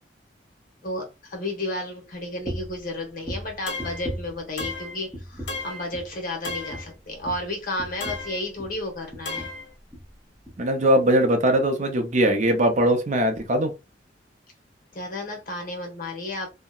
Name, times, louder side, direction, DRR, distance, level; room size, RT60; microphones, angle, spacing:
voice 1, 0.8-9.5 14.9-16.5, left 1 dB, 50° left, 0.9 m, -32 dB
sound 1, 2.4-2.8 3.2-4.8 5.1-5.7 5.9-6.2 6.4-8.8 9.1-9.6 9.9-10.1 10.4-10.6, equal, 5° right, 0.8 m, -37 dB
sound 2, 3.7-4.1 4.6-5.0 5.5-5.9 6.4-6.9 8.0-8.5 9.3-9.7, left 3 dB, 85° left, 0.7 m, -34 dB
voice 2, 10.6-13.7, right 1 dB, 45° right, 0.5 m, -20 dB
2.8 x 2.0 x 2.3 m
head